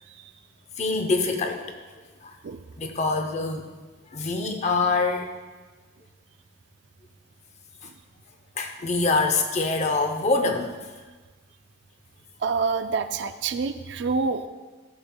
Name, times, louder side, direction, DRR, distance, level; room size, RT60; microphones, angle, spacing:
voice 1, 0.8-1.8 2.2-2.3 2.8-3.7 4.1-5.3 8.6-10.7, left 3 dB, 35° left, 5 dB, 0.6 m, -25 dB
voice 2, 12.4-14.5, right 4 dB, 55° right, 9 dB, 0.3 m, -27 dB
12.5 x 6.9 x 2.2 m, 1.3 s
head